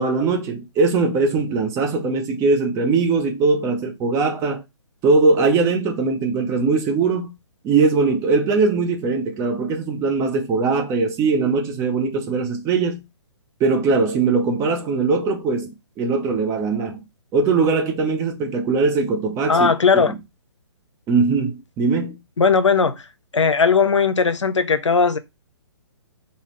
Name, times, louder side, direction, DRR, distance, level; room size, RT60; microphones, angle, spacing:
voice 1, 0.0-4.6 5.0-7.3 7.6-13.0 13.6-17.0 17.3-20.1 21.1-22.2, right 4 dB, 20° right, 0.9 m, -20 dB
voice 2, 19.5-20.1 22.4-23.0 23.3-25.2, left 5 dB, 85° left, 0.6 m, -17 dB
5.1 x 2.2 x 3.1 m
figure-of-eight pair, 135°, 15 cm